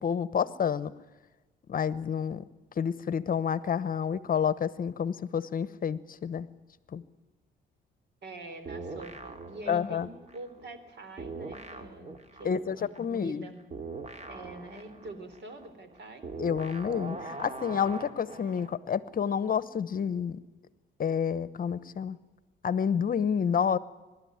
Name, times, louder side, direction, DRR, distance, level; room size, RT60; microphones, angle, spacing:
voice 1, 0.0-0.9 1.7-2.4 2.8-6.5 6.9-7.0 9.7-10.1 12.4-13.4 16.4-20.4 21.0-22.2 22.6-23.8, left 7 dB, 45° left, 17 dB, 0.9 m, -29 dB
voice 2, 8.2-13.6 14.3-16.2, right 2 dB, 60° right, 10 dB, 3.8 m, -45 dB
sound 1, 8.7-10.9 11.2-18.8, right 3 dB, 35° right, 2.2 m, -42 dB
24.5 x 12.5 x 9.5 m, 1.2 s
cardioid pair, 90°, 20 cm